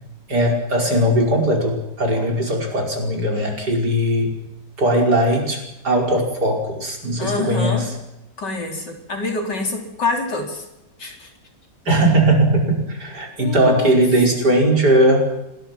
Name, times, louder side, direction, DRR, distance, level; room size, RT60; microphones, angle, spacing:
voice 1, 0.3-4.3 4.8-7.9 11.9-15.2, right 1 dB, 65° right, 1 dB, 5.9 m, -19 dB
voice 2, 7.2-7.9 8.4-10.6 11.0-11.3 13.4-14.0, left 3 dB, 70° left, 2 dB, 4.7 m, -26 dB
26.5 x 20.5 x 6.1 m, 0.91 s
omnidirectional pair, 1.9 m